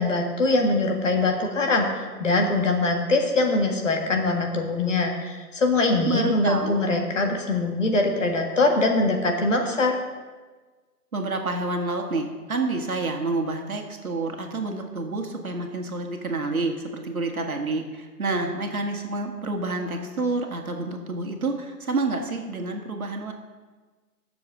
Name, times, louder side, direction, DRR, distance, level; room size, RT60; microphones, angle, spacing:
voice 1, 0.0-10.0, left 2 dB, 50° left, 2 dB, 1.8 m, -23 dB
voice 2, 6.1-6.8 11.1-23.3, right 3 dB, 60° right, 3 dB, 1.8 m, -28 dB
18.5 x 7.0 x 3.7 m, 1.4 s
figure-of-eight pair, 155°, 47 cm